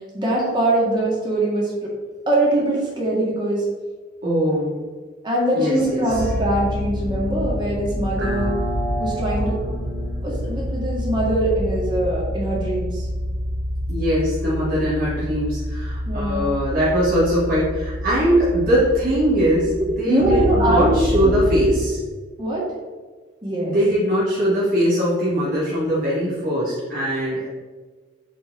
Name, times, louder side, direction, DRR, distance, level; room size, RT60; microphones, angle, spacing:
voice 1, 0.1-1.9 2.3-3.6 5.2-8.5 9.0-9.6 10.2-13.0 16.1-16.5 20.1-21.0 21.2-21.3 22.4-22.6 23.4-23.9, right 1 dB, 25° right, -5 dB, 2.1 m, -22 dB
voice 2, 4.2-4.8 5.5-6.3 13.9-19.7 20.0-22.0 23.6-27.5, equal, 50° right, -9 dB, 2.2 m, -21 dB
sound 1, 6.1-21.9, equal, 85° right, 1.5 m, -27 dB
8.0 x 4.4 x 3.9 m, 1.4 s
head